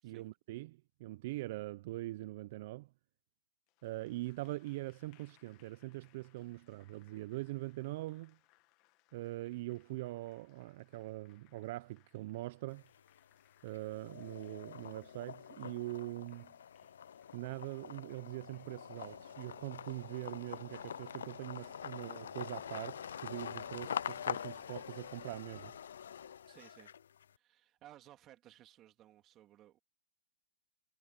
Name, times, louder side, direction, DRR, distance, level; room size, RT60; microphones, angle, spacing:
voice 1, 0.0-2.9 3.8-8.4 9.1-12.8 13.6-16.5 17.3-25.7, right 18 dB, 45° right, 0.5 m, -43 dB
Applause, 3.7-21.5, left 22 dB, 35° left, 1.6 m, -72 dB
sound 1, 12.7-13.3 13.7-27.3, left 8 dB, 75° left, 0.4 m, -45 dB
sound 2, 18.9-25.7, right 8 dB, 80° right, 1.0 m, -65 dB
voice 2, 26.5-26.9 27.4-29.8, right 13 dB, 25° right, 2.9 m, -59 dB
hypercardioid pair, 145°, 0 cm